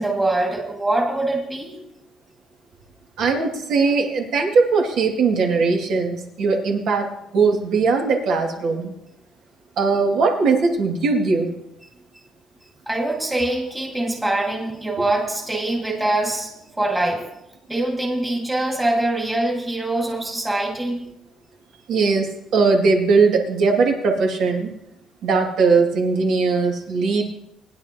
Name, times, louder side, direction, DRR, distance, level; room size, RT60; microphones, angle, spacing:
voice 1, 0.0-1.8 12.9-17.3 17.7-21.0, right 2 dB, 10° right, -1 dB, 2.2 m, -23 dB
voice 2, 3.2-8.9 9.8-11.5 21.9-24.7 25.2-27.2, right 4 dB, 65° right, 1 dB, 2.5 m, -19 dB
20.5 x 11.0 x 3.0 m, 0.83 s
cardioid pair, 160°, 0 cm